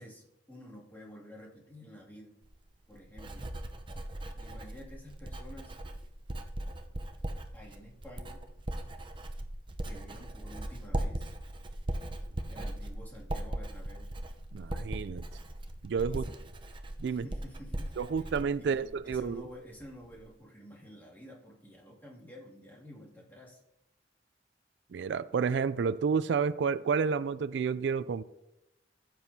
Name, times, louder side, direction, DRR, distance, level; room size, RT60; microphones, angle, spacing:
voice 1, 0.0-2.3 2.9-3.5 4.3-5.8 7.5-8.5 9.9-11.4 12.5-14.1 16.1-16.4 17.1-18.0 18.6-23.6, equal, 10° left, 2.4 m, -50 dB
Writing, 2.4-19.5 19.8-20.2, right 1 dB, 30° right, 0.7 m, -39 dB
voice 2, 14.5-15.2 15.8-16.2 17.0-17.3 18.0-19.4 24.9-28.2, right 6 dB, 75° right, 0.3 m, -30 dB
14.5 x 7.7 x 2.8 m
head